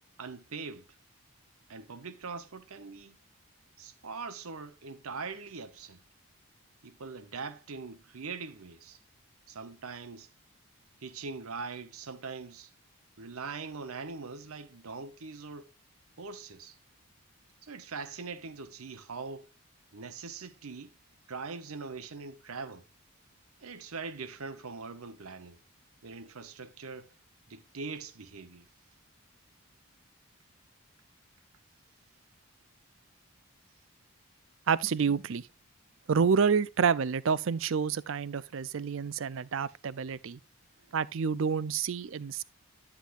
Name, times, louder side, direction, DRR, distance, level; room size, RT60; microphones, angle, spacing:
voice 1, 0.2-0.9 1.7-3.2 3.8-6.0 6.8-9.0 9.5-10.3 11.0-12.7 13.2-15.7 16.2-16.8 17.6-19.5 19.9-20.9 21.3-22.9 23.6-25.6 26.0-27.1 27.5-28.7 40.9-41.0, right 4 dB, 75° right, 0.9 m, -42 dB
voice 2, 34.7-35.5 36.1-40.4 40.9-42.4, right 6 dB, 60° right, 0.4 m, -28 dB
9.9 x 8.2 x 2.5 m
head